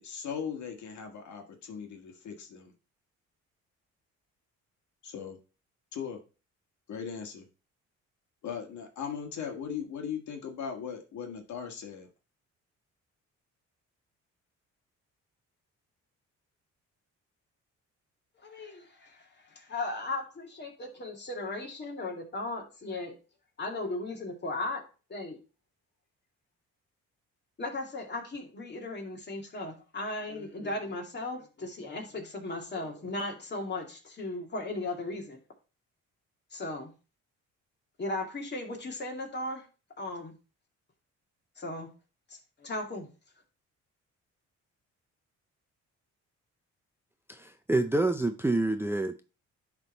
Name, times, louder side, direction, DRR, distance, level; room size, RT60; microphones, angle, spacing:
voice 1, 0.0-2.7 5.0-5.4 5.9-6.2 6.9-7.5 8.4-12.1, left 7 dB, 70° left, 1.7 m, -38 dB
voice 2, 18.4-23.1 23.6-24.8 25.1-25.4 27.6-35.4 36.5-36.9 38.0-39.6 40.0-40.3 41.6-41.9 42.3-43.1, left 2 dB, 35° left, 2.4 m, -36 dB
voice 3, 47.3-49.3, right 2 dB, 10° right, 0.6 m, -28 dB
10.5 x 3.8 x 4.0 m
cardioid pair, 90°, 30 cm